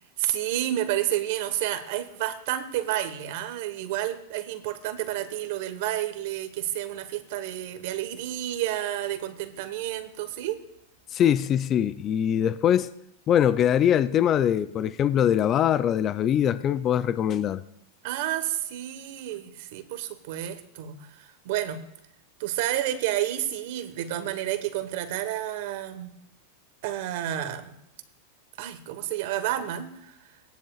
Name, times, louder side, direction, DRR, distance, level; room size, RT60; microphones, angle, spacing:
voice 1, 0.2-10.6 18.0-21.8 22.4-26.1 26.8-27.7 28.6-30.1, right 12 dB, 65° right, 1.2 m, -30 dB
voice 2, 11.1-12.9 13.3-17.6, left 9 dB, 35° left, 0.4 m, -22 dB
18.0 x 10.5 x 2.4 m
hypercardioid pair, 120°, 0 cm